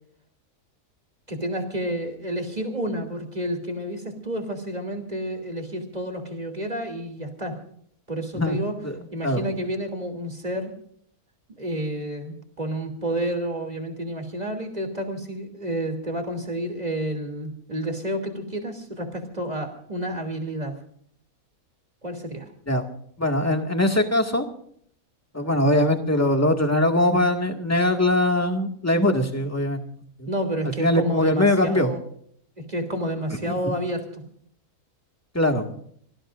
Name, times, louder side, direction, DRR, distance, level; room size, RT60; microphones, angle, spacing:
voice 1, 1.3-7.5 8.1-8.8 9.1-10.7 11.6-20.7 22.0-22.5 30.3-32.0 32.7-34.2, right 1 dB, 25° right, 5 dB, 3.1 m, -30 dB
voice 2, 23.2-24.4 25.3-29.8 30.2-30.3 30.8-31.9 33.5-33.7 35.3-35.6, left 1 dB, 10° left, 4 dB, 1.9 m, -21 dB
27.0 x 19.0 x 2.6 m, 0.65 s
omnidirectional pair, 1.6 m